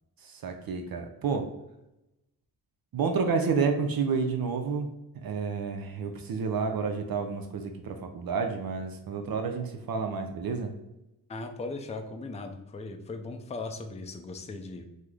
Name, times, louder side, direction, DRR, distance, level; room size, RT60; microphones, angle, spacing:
voice 1, 0.3-1.5 2.9-4.9 5.2-10.7, right 5 dB, 55° right, 5 dB, 0.5 m, -30 dB
voice 2, 11.3-14.9, left 3 dB, 15° left, 5 dB, 0.4 m, -38 dB
3.0 x 2.0 x 3.6 m, 0.92 s
supercardioid pair, 45°, 42 cm